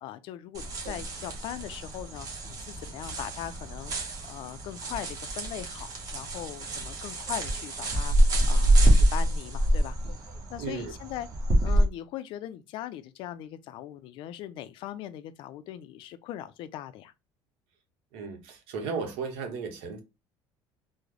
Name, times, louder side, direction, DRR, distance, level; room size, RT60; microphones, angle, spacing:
voice 1, 0.0-10.0 10.5-11.3 11.6-17.1, left 12 dB, 60° left, 0.4 m, -40 dB
sound 1, 0.5-11.8, right 1 dB, 40° right, 1.1 m, -26 dB
voice 2, 10.6-10.9 18.1-20.0, right 5 dB, 80° right, 0.9 m, -35 dB
3.6 x 2.1 x 3.1 m
cardioid pair, 145°, 10 cm